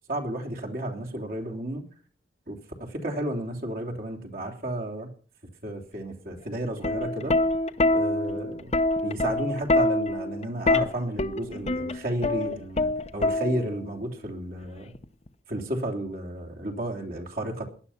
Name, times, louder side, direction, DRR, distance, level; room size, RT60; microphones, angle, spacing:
voice 1, 0.1-1.8 2.5-5.1 5.6-7.3 7.9-8.7 9.0-14.9 15.5-17.6, right 1 dB, 50° right, 0 dB, 3.2 m, -32 dB
Plucked string instrument, 6.6-13.9 14.9-15.3, left 2 dB, 35° left, 0.8 m, -25 dB
18.5 x 11.5 x 5.8 m, 0.42 s
head